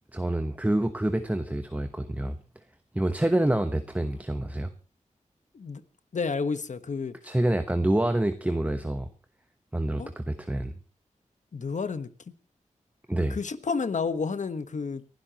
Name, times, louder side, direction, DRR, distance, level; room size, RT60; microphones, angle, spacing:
voice 1, 0.1-2.4 2.9-4.7 7.2-9.1 9.7-10.7 13.1-13.4, right 1 dB, 10° right, 1.0 m, -27 dB
voice 2, 6.1-7.1 10.0-10.1 11.5-12.1 13.3-15.0, left 4 dB, 70° left, 1.3 m, -30 dB
30.0 x 12.0 x 3.0 m
wide cardioid pair, 80°, 13 cm